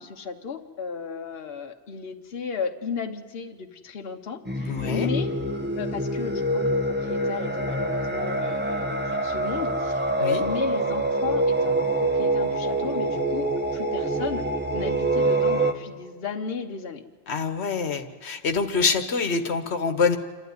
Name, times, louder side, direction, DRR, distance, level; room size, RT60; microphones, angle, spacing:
voice 1, 0.0-5.3 5.8-14.5 14.7-17.0, left 6 dB, 65° left, 4 dB, 1.2 m, -34 dB
sound 1, 4.4-15.7, right 2 dB, 10° right, 1.1 m, -25 dB
voice 2, 4.7-5.1 10.2-10.4 17.3-20.2, left 5 dB, 90° left, 7 dB, 1.4 m, -25 dB
27.0 x 12.0 x 9.5 m, 1.4 s
omnidirectional pair, 1.1 m